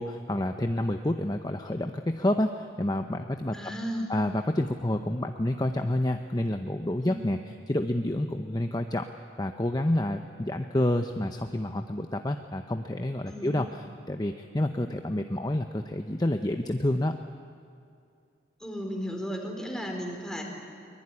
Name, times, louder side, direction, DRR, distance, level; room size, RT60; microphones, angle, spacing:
voice 1, 0.0-3.6 4.1-7.4 7.7-9.1 9.4-17.2, left 1 dB, 20° left, 6 dB, 0.8 m, -29 dB
voice 2, 3.5-4.1 7.0-7.2 13.3-13.5 18.6-20.4, equal, 5° left, 1 dB, 4.0 m, -34 dB
23.5 x 21.5 x 9.8 m, 2.5 s
head